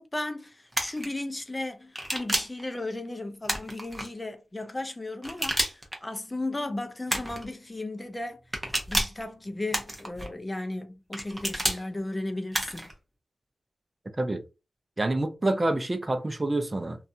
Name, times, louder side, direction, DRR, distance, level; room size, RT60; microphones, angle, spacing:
voice 1, 0.0-8.4 8.9-12.9, left 2 dB, 25° left, 0.5 m, -35 dB
sound 1, 0.7-1.1 1.9-2.6 3.4-4.1 5.2-6.0 7.1-7.5 8.5-9.2 9.7-10.3 11.1-11.8 12.5-12.9, right 1 dB, 15° right, 0.9 m, -30 dB
voice 2, 15.0-17.0, right 2 dB, 30° right, 0.5 m, -27 dB
2.5 x 2.3 x 2.5 m
cardioid pair, 55°, 0 cm